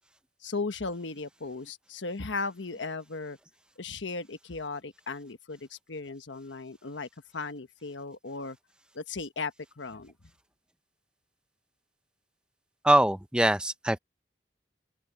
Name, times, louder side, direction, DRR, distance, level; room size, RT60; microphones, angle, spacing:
voice 1, 0.4-3.4 3.8-8.6 8.9-10.1, left 3 dB, 85° left, 1.2 m, -36 dB
voice 2, 12.8-14.0, right 1 dB, 5° right, 0.6 m, -23 dB
open air
head